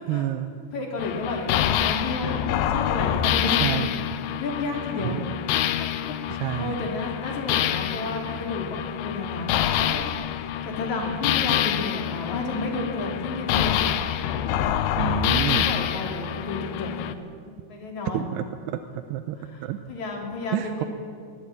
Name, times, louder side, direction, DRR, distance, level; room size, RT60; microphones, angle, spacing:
voice 1, 0.1-0.6 3.6-3.9 5.0-5.2 6.3-6.8 15.0-15.7 18.1-19.8 20.5-20.8, right 12 dB, 85° right, 7 dB, 2.8 m, -29 dB
voice 2, 0.7-3.9 4.4-5.2 5.5-10.1 10.3-13.8 15.4-17.0 17.7-18.3 19.4-20.9, left 3 dB, 45° left, 1 dB, 4.2 m, -32 dB
sound 1, 1.0-17.1, left 10 dB, 75° left, 2.3 m, -26 dB
23.0 x 15.0 x 8.8 m, 2.3 s
omnidirectional pair, 4.7 m